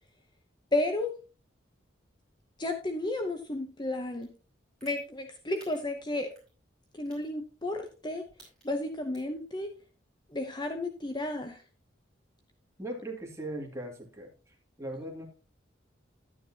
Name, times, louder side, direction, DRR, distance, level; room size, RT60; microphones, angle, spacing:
voice 1, 0.7-1.2 2.6-4.3 4.8-6.3 6.9-8.2 8.6-9.8 10.3-11.6, left 2 dB, 25° left, 5 dB, 0.8 m, -32 dB
sound 1, 4.2-4.3 4.8-5.0 5.5-5.7 6.3-6.5 7.0-7.2 7.8-8.0 8.3-8.7 9.1-9.4, right 2 dB, 5° left, 5.8 m, -55 dB
voice 2, 12.8-15.3, right 1 dB, 15° right, 1 dB, 2.2 m, -39 dB
11.0 x 9.6 x 2.8 m, 0.33 s
head